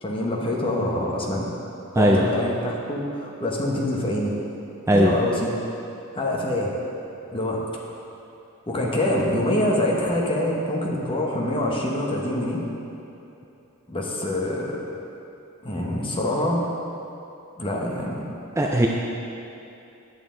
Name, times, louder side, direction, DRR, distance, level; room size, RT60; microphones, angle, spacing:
voice 1, 0.0-1.5 2.0-4.3 4.9-5.6 6.1-6.7 7.3-7.6 8.7-12.6 13.9-14.8 15.6-16.7 17.6-18.4, left 1 dB, 25° left, -2 dB, 1.1 m, -25 dB
voice 2, 18.6-18.9, right 1 dB, 10° right, -1 dB, 0.4 m, -18 dB
9.3 x 8.0 x 3.8 m, 2.8 s
head